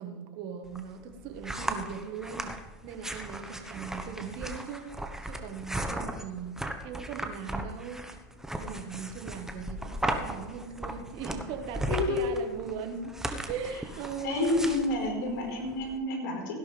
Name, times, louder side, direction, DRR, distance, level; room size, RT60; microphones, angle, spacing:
voice 1, 0.0-2.5 2.8-6.5 6.8-8.1 8.6-13.2 13.5-15.4, right 7 dB, 55° right, 6 dB, 1.6 m, -39 dB
sound 1, 0.7-16.0, right 1 dB, 5° right, 1.2 m, -37 dB
voice 2, 11.9-12.5 14.2-16.5, left 2 dB, 70° left, 0 dB, 4.7 m, -29 dB
16.5 x 11.0 x 3.5 m, 1.2 s
hypercardioid pair, 95°, 10 cm